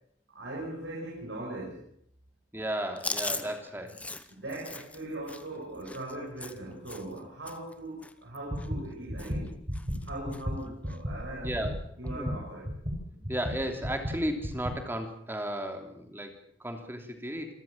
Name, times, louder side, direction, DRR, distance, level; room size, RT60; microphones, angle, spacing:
voice 1, 0.3-1.8 3.8-3.9 4.3-9.6 10.0-11.5 12.0-12.7 13.1-13.2, right 1 dB, 85° right, -4 dB, 6.5 m, -40 dB
voice 2, 2.5-4.0 10.7-10.8 11.4-11.7 13.3-17.5, equal, 10° right, 4 dB, 3.0 m, -34 dB
Chewing mastication, 3.0-7.2 7.5-7.7 8.0-8.9 9.2-9.5 9.7-10.4 10.9-11.0 12.0-12.4, left 2 dB, 10° left, 1.0 m, -39 dB
sound 1, 8.5-14.8, equal, 40° right, 6.5 m, -35 dB
28.0 x 13.5 x 7.4 m, 0.68 s
head